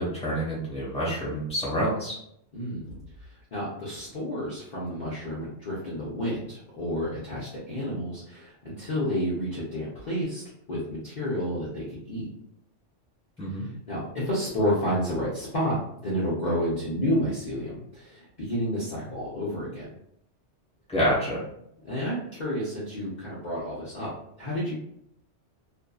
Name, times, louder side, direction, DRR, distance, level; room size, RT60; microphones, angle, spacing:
voice 1, 0.0-2.1 13.4-13.7 20.9-21.4, equal, 5° left, -7 dB, 1.1 m, -27 dB
voice 2, 2.5-3.0 3.5-12.3 13.6-19.9 21.8-24.1 24.4-24.7, equal, 45° left, -8 dB, 0.7 m, -30 dB
2.6 x 2.5 x 2.3 m, 0.74 s
omnidirectional pair, 1.2 m